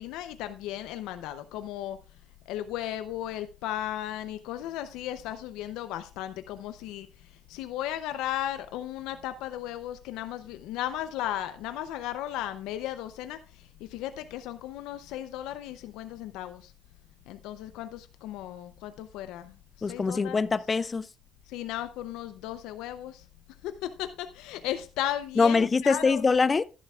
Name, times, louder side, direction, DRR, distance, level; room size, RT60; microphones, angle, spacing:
voice 1, 0.0-2.0 2.5-16.7 17.3-20.4 21.5-23.3 23.6-26.2, left 12 dB, 90° left, 0.6 m, -35 dB
voice 2, 19.8-21.1 25.4-26.6, left 4 dB, 25° left, 0.3 m, -23 dB
11.5 x 11.0 x 2.4 m
cardioid pair, 120°, 0 cm